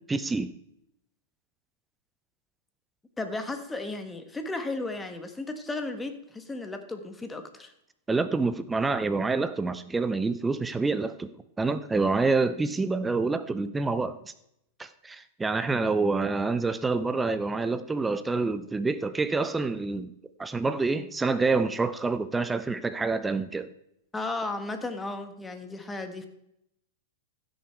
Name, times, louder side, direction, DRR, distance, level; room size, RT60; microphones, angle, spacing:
voice 1, 0.1-0.5 8.1-11.3 11.6-14.2 14.8-20.1 20.4-23.7, right 3 dB, 10° right, 13 dB, 0.7 m, -27 dB
voice 2, 3.2-7.7 24.1-26.3, left 2 dB, 10° left, 8 dB, 1.5 m, -34 dB
15.5 x 6.8 x 4.6 m, 0.78 s
hypercardioid pair, 105°, 0 cm